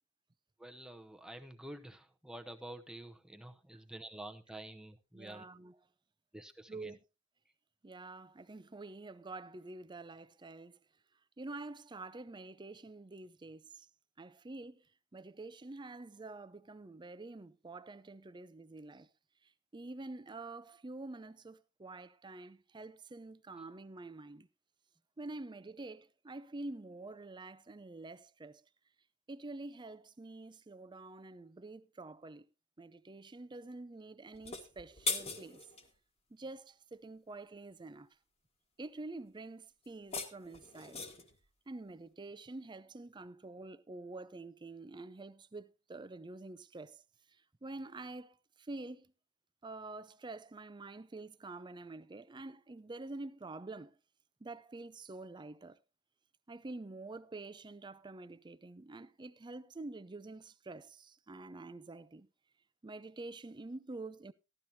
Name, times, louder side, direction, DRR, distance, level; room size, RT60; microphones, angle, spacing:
voice 1, 0.6-5.4 6.3-6.9, right 1 dB, 5° right, 0.9 m, -49 dB
voice 2, 5.1-5.8 6.7-7.0 7.8-10.8 11.4-13.9 14.2-14.8 15.1-19.1 19.7-24.5 25.2-28.6 29.3-32.5 32.8-35.6 36.3-38.1 38.8-41.0 41.7-47.0 47.6-49.1 49.6-54.0 54.4-55.8 56.5-62.3 62.8-64.3, right 2 dB, 20° right, 0.5 m, -47 dB
sound 1, 34.3-35.9 39.8-41.4, left 3 dB, 30° left, 1.5 m, -40 dB
14.5 x 12.0 x 2.7 m
head